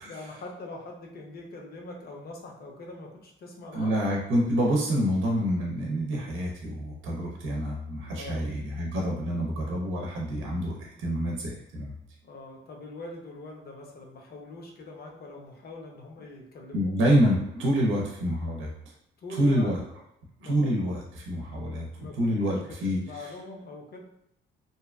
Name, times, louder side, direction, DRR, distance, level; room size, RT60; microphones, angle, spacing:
voice 1, 0.1-3.9 8.1-8.5 12.2-16.9 19.2-19.7 20.4-20.7 22.0-24.0, left 2 dB, 50° left, 0 dB, 0.7 m, -43 dB
voice 2, 3.7-11.9 16.7-18.7 19.4-19.8 20.4-21.9 22.2-23.0, equal, 80° right, -1 dB, 0.6 m, -27 dB
2.7 x 2.4 x 2.3 m, 0.81 s
cardioid pair, 90°, 20 cm